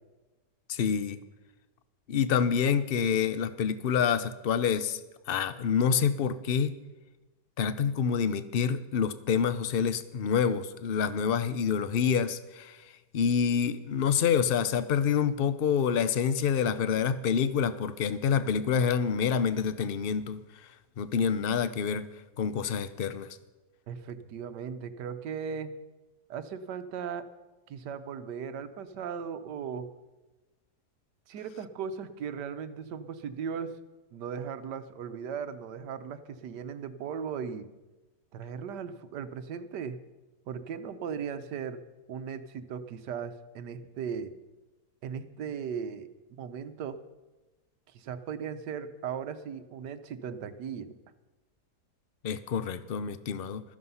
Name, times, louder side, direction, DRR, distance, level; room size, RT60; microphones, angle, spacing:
voice 1, 0.7-1.2 2.1-5.0 5.3-6.7 7.6-12.8 13.1-20.4 21.0-22.1 22.4-23.4 52.2-53.6, left 7 dB, 55° left, 13 dB, 0.6 m, -27 dB
voice 2, 23.9-25.7 26.3-27.3 27.7-29.9 31.3-33.7 34.1-37.7 38.3-40.0 40.5-41.8 42.1-44.3 45.0-46.1 46.4-47.0 47.9-50.9, right 7 dB, 75° right, 11 dB, 1.5 m, -37 dB
15.5 x 13.5 x 5.6 m, 1.1 s
omnidirectional pair, 1.8 m